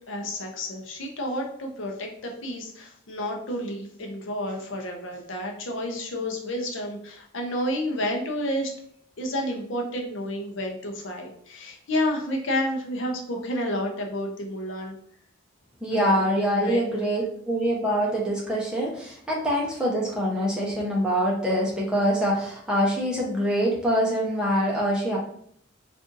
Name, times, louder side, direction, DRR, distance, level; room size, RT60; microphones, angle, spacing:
voice 1, 0.1-8.7 9.2-15.0 15.9-16.8, left 1 dB, 70° left, 1 dB, 0.6 m, -30 dB
voice 2, 15.8-25.2, equal, 5° right, -5 dB, 0.7 m, -24 dB
2.5 x 2.5 x 3.8 m, 0.64 s
head